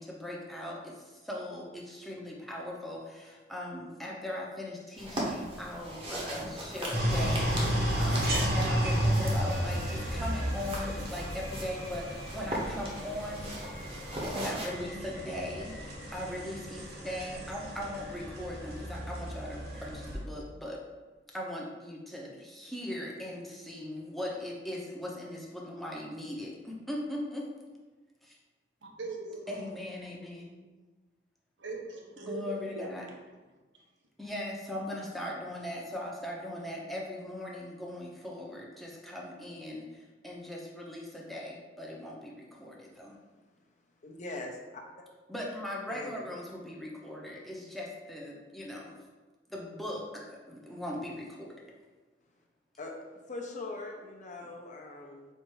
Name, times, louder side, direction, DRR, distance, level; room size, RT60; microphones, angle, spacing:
voice 1, 0.0-13.5 14.3-20.8 21.3-27.5 28.2-28.4 29.5-30.6 32.2-33.1 34.2-43.2 45.3-49.0 49.5-51.6 54.4-54.5, left 1 dB, ahead, -3 dB, 0.7 m, -39 dB
sound 1, 5.0-14.7, right 1 dB, 30° right, 0.9 m, -39 dB
sound 2, 6.9-20.2, equal, 60° right, 1.1 m, -33 dB
voice 2, 28.8-29.6 31.6-32.9 33.5-33.6, right 3 dB, 80° right, -1 dB, 0.9 m, -40 dB
voice 3, 44.0-44.8 45.9-46.1 52.8-53.0 53.3-55.3, left 2 dB, 45° left, 1 dB, 0.6 m, -41 dB
4.4 x 2.5 x 4.6 m, 1.3 s
head